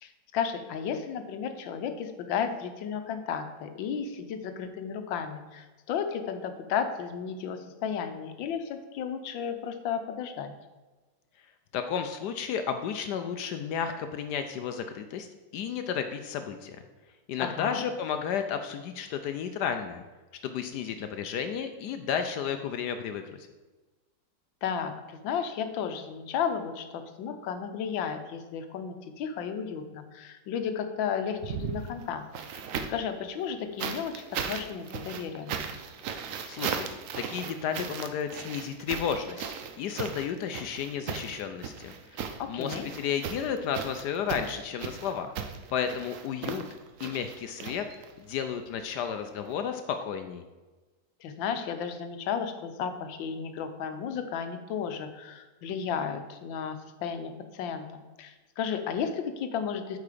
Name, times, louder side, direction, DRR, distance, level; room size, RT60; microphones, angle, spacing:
voice 1, 0.0-10.5 17.4-17.8 24.6-32.2 32.9-35.5 42.4-42.9 51.2-60.0, left 7 dB, 90° left, 8 dB, 1.5 m, -33 dB
voice 2, 11.7-15.3 15.5-16.8 17.3-20.0 20.4-23.5 36.5-36.9 37.2-45.3 45.7-46.6 47.0-47.9 48.2-50.4, left 7 dB, 75° left, 7 dB, 1.0 m, -32 dB
sound 1, 31.3-33.1 33.8-48.3 49.4-49.5, right 7 dB, 65° right, 0.8 m, -37 dB
8.4 x 4.8 x 4.9 m, 1.2 s
omnidirectional pair, 2.0 m